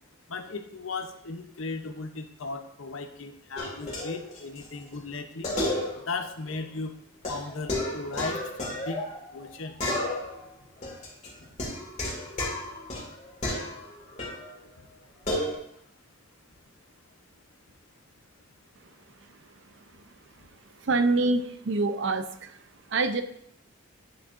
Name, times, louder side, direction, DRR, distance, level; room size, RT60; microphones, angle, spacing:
voice 1, 0.3-5.5 6.0-6.9 7.3-8.4 8.8-9.0 9.3-9.7, left 3 dB, 80° left, 7 dB, 0.8 m, -36 dB
sound 1, 3.6-4.7 4.9-5.0 5.4-6.3 6.5-6.6 7.2-9.5 9.8-10.5 10.8-14.5 15.3-15.5, left 1 dB, 35° left, 2.1 m, -32 dB
voice 2, 20.8-22.5 22.9-23.2, right 3 dB, 60° right, 9 dB, 0.5 m, -25 dB
9.9 x 6.3 x 2.6 m, 0.70 s
head